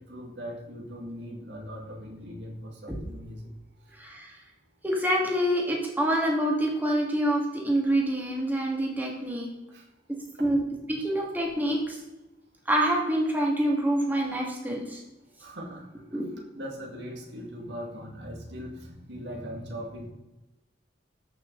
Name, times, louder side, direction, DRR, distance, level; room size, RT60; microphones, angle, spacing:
voice 1, 0.0-3.5 9.7-9.9 10.4-10.5 15.4-16.2 16.5-20.1, equal, 70° right, 1 dB, 2.2 m, -40 dB
voice 2, 3.9-4.4 4.8-9.5 10.4-10.6 10.9-12.0 12.7-15.0 16.1-16.2, right 1 dB, 10° right, -1 dB, 2.2 m, -26 dB
13.5 x 6.2 x 4.0 m, 1.0 s
head